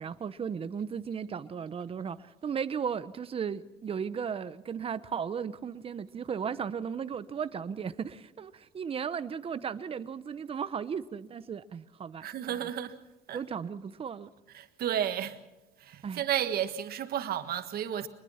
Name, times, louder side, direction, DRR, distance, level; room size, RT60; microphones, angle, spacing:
voice 1, 0.0-12.7 13.3-14.3 16.0-16.2, right 7 dB, 35° right, 0.9 m, -36 dB
voice 2, 12.2-13.0 13.3-13.4 14.5-15.4 15.8-18.1, right 10 dB, 65° right, 1.6 m, -32 dB
24.0 x 21.0 x 5.7 m
cardioid pair, 110°, 17 cm